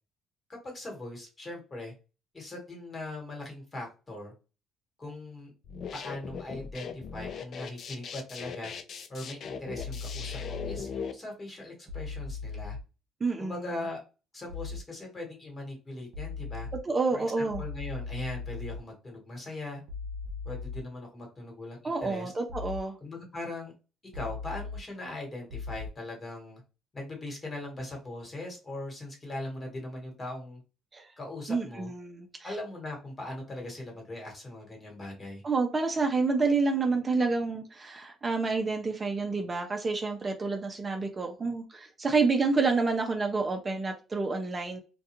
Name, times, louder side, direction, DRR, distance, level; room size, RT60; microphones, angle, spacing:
voice 1, 0.5-1.9 2.3-4.3 5.0-5.5 5.9-8.7 9.1-12.8 13.4-14.0 14.3-16.7 17.1-19.8 20.4-22.3 23.0-23.7 24.1-26.6 26.9-30.6 31.2-31.9 32.4-35.4, left 2 dB, 30° left, 0 dB, 1.2 m, -40 dB
sound 1, 5.6-11.1, left 6 dB, 55° left, 0.4 m, -39 dB
sound 2, 9.8-10.8 11.9-12.8 14.5-14.8 16.1-16.8 17.5-18.8 19.9-20.8 22.5-22.8 24.1-24.8 25.5-25.9, left 4 dB, 75° right, 0.6 m, -38 dB
voice 2, 13.2-13.6 16.9-17.6 21.8-23.0 30.9-31.1 31.5-32.5 35.4-44.8, right 4 dB, 30° right, 3 dB, 0.5 m, -28 dB
2.3 x 2.2 x 2.9 m, 0.32 s
cardioid pair, 95°, 0 cm